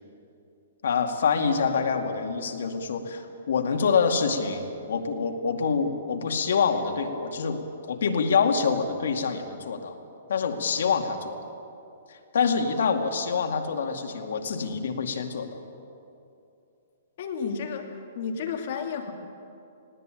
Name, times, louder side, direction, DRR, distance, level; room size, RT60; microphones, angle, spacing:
voice 1, 0.8-10.0 10.3-11.4 12.1-15.5, left 5 dB, 75° left, 5 dB, 2.3 m, -26 dB
voice 2, 17.2-19.1, left 6 dB, 50° left, 4 dB, 2.6 m, -32 dB
19.5 x 18.0 x 9.2 m, 2.7 s
hypercardioid pair, 165°, 0 cm